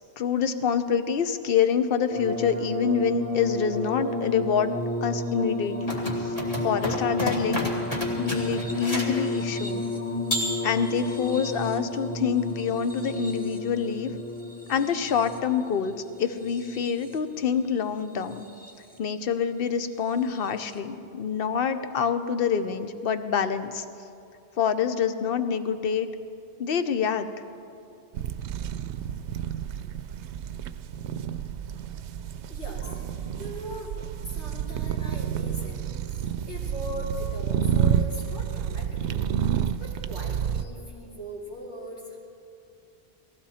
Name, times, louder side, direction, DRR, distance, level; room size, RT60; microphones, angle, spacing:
voice 1, 0.2-4.7 5.0-6.3 6.6-7.7 8.2-9.9 10.6-14.1 14.7-18.4 19.0-23.8 24.6-26.1 26.6-27.3, left 7 dB, 60° left, 10 dB, 0.9 m, -26 dB
sound 1, 2.1-17.4 18.2-18.9 20.4-20.5, left 1 dB, 10° left, 1.5 m, -32 dB
sound 2, 5.8-9.2 10.3-11.1, left 1 dB, 35° left, 2.3 m, -31 dB
sound 3, 28.1-40.6, right 9 dB, 90° right, 0.9 m, -29 dB
voice 2, 32.4-33.9 34.2-39.2 39.8-42.2, equal, 80° left, -4 dB, 3.0 m, -40 dB
19.5 x 15.0 x 4.2 m, 2.6 s
omnidirectional pair, 1.1 m